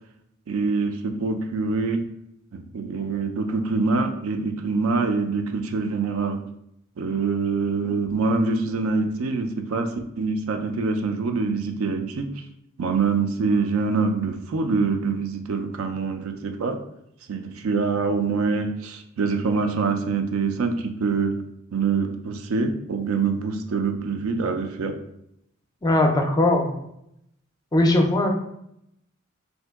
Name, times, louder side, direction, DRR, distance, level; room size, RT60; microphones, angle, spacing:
voice 1, 0.5-2.1 2.5-6.4 7.0-12.4 12.8-16.8 17.3-21.4 21.7-25.0, right 4 dB, 80° right, 6 dB, 0.4 m, -25 dB
voice 2, 25.8-26.7 27.7-28.3, left 1 dB, 20° left, 3 dB, 0.4 m, -19 dB
2.9 x 2.7 x 3.4 m, 0.77 s
head